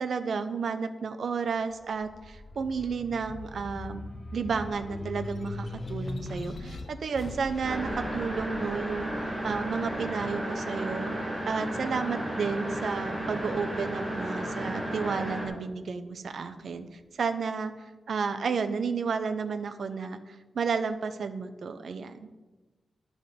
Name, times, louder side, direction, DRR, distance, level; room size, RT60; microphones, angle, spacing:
voice 1, 0.0-4.0 4.3-9.1 9.4-11.1 11.4-17.7 18.1-22.3, right 5 dB, 65° right, 9 dB, 0.7 m, -32 dB
sound 1, 1.6-12.4 12.9-14.0, left 2 dB, 35° left, 0.8 m, -41 dB
sound 2, 7.6-15.5, right 1 dB, 10° right, 2.4 m, -33 dB
12.0 x 6.3 x 5.2 m, 1.2 s
wide cardioid pair, 155°, 0 cm